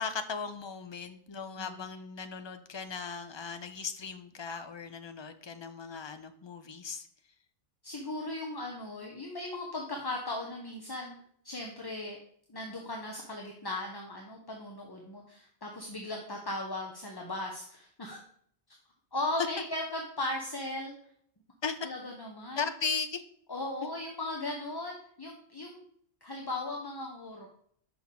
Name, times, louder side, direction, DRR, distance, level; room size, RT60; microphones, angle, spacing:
voice 1, 0.0-7.1 21.6-21.8 22.6-23.2 23.8-23.9, left 5 dB, 45° left, 9 dB, 0.3 m, -37 dB
voice 2, 7.8-11.2 11.4-12.2 12.5-18.2 19.1-20.9 21.8-22.7 23.5-25.8 26.2-27.5, left 2 dB, 25° left, 0 dB, 0.7 m, -37 dB
5.8 x 5.7 x 3.7 m, 0.63 s
omnidirectional pair, 1.1 m